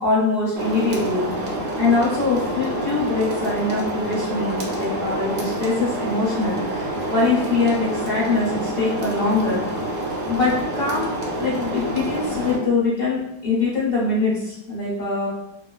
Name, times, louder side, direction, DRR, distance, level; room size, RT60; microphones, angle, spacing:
voice 1, 0.0-1.3 1.8-9.6 10.3-11.1 11.4-15.3, left 3 dB, 45° left, -6 dB, 1.0 m, -23 dB
sound 1, 0.6-12.6, right 1 dB, 65° right, 1.0 m, -27 dB
3.0 x 2.1 x 2.3 m, 0.81 s
omnidirectional pair, 1.7 m